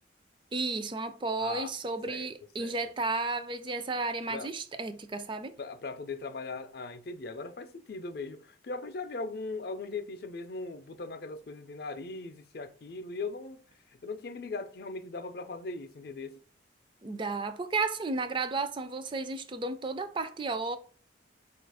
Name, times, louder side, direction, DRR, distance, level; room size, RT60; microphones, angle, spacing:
voice 1, 0.5-5.5 17.0-20.8, right 3 dB, 25° right, 0.4 m, -33 dB
voice 2, 1.4-1.7 2.1-2.3 2.6-2.7 4.3-4.5 5.6-13.6 14.0-16.4, left 3 dB, 55° left, 0.5 m, -39 dB
4.5 x 2.5 x 4.7 m
head